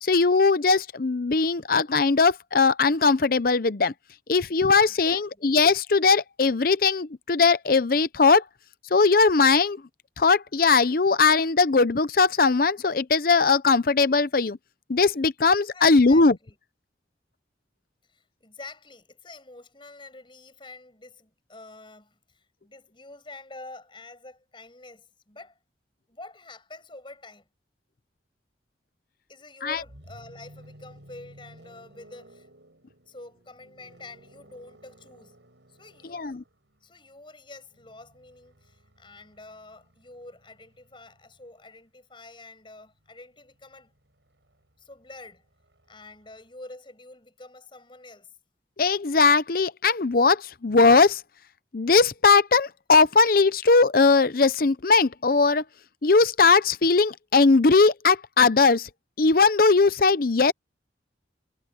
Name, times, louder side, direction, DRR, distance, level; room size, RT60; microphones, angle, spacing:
voice 1, 0.0-3.9 4.3-8.4 8.9-9.8 10.2-14.6 14.9-16.4 29.6-29.8 36.1-36.4 48.8-51.2 51.7-55.6 56.0-58.9 59.2-60.5, left 4 dB, 50° left, 0.7 m, -20 dB
voice 2, 4.9-5.5 15.7-16.6 18.1-25.6 26.1-27.5 29.3-32.5 33.1-35.4 35.7-36.4 36.8-43.9 44.8-45.4 45.9-48.3, left 2 dB, 25° left, 6.6 m, -47 dB
sound 1, 29.7-41.6 42.9-46.5, right 1 dB, 80° right, 7.3 m, -55 dB
head